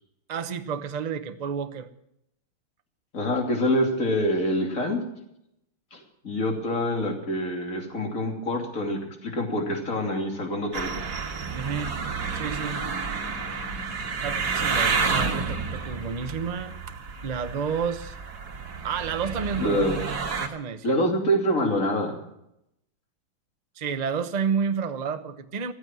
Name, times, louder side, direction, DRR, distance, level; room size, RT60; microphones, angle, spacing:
voice 1, 0.3-1.9 11.5-11.9 12.3-12.8 14.2-16.7 17.2-18.1 18.8-19.9 20.4-21.0 23.8-25.7, right 6 dB, 70° right, 9 dB, 0.4 m, -30 dB
voice 2, 3.1-5.0 5.9-6.0 6.2-11.0 19.6-20.0 20.8-22.2, equal, 40° left, 2 dB, 3.2 m, -26 dB
sound 1, 10.7-20.5, right 5 dB, 50° right, 2.1 m, -30 dB
15.0 x 13.0 x 6.1 m, 0.79 s
omnidirectional pair, 2.3 m